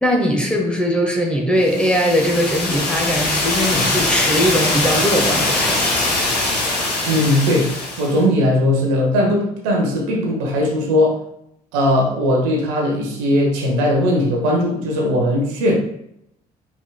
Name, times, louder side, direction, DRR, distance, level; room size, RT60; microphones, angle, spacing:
voice 1, 0.0-5.8, equal, 5° left, 0 dB, 1.1 m, -20 dB
sound 1, 1.6-8.2, left 2 dB, 85° left, 0.7 m, -21 dB
voice 2, 7.1-7.7 8.0-11.2 11.7-15.7, left 1 dB, 65° right, -2 dB, 1.2 m, -18 dB
4.8 x 4.2 x 2.3 m, 0.76 s
figure-of-eight pair, 45°, 20 cm